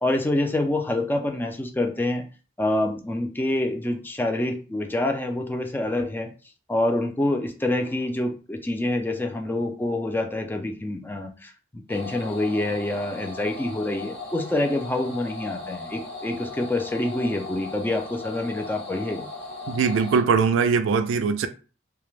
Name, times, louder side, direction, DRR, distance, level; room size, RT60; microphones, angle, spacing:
voice 1, 0.0-2.2 2.6-6.3 6.7-19.3, left 1 dB, 10° left, 0.3 m, -26 dB
sound 1, 11.9-20.2, left 3 dB, 65° left, 1.0 m, -38 dB
voice 2, 19.7-21.5, right 5 dB, 80° right, 0.3 m, -21 dB
2.3 x 2.0 x 3.1 m
head